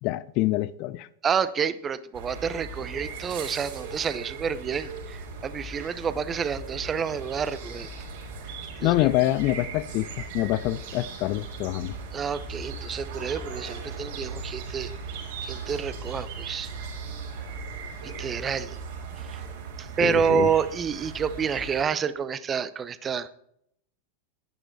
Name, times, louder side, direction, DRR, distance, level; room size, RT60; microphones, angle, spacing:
voice 1, 0.0-1.1 8.8-10.1 10.3-11.9 20.0-20.5, left 17 dB, 40° left, 0.5 m, -25 dB
voice 2, 1.2-7.9 8.8-9.1 12.1-14.9 15.4-16.7 18.2-18.8 19.3-19.4 19.8-23.3, right 7 dB, 20° right, 0.7 m, -28 dB
sound 1, 2.1-21.8, right 4 dB, 50° right, 4.3 m, -38 dB
11.0 x 10.5 x 4.6 m
figure-of-eight pair, 90°, 0 cm